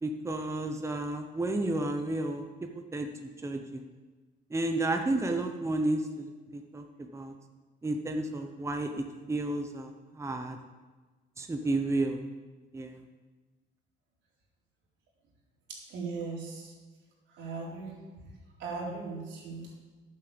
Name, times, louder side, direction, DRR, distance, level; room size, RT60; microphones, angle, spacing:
voice 1, 0.0-2.4 2.9-3.8 4.5-6.3 6.5-7.3 7.8-10.6 11.4-12.2 12.7-13.0, right 2 dB, 15° right, 5 dB, 1.0 m, -32 dB
voice 2, 15.7-16.7 17.3-17.9 18.6-19.7, right 4 dB, 85° right, -3 dB, 4.0 m, -38 dB
10.5 x 8.6 x 7.1 m, 1.3 s
cardioid pair, 110°, 18 cm